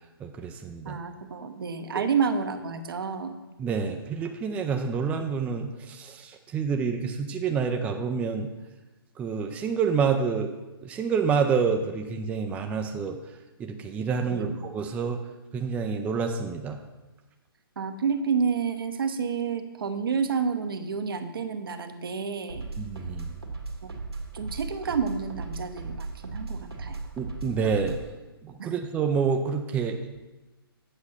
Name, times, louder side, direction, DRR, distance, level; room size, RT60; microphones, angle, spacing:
voice 1, 0.2-1.0 3.6-8.5 9.2-10.5 10.8-13.2 13.6-15.2 15.5-16.8 22.8-23.3 27.2-28.0 28.4-30.0, right 5 dB, 10° right, 4 dB, 0.4 m, -28 dB
voice 2, 0.8-3.4 14.3-14.6 17.8-22.7 23.8-24.0 24.3-27.0 28.6-28.7, right 6 dB, 65° right, 8 dB, 0.8 m, -29 dB
sound 1, 22.5-28.1, right 3 dB, 85° right, 1.8 m, -37 dB
8.2 x 5.2 x 5.7 m, 1.1 s
figure-of-eight pair, 135°, 13 cm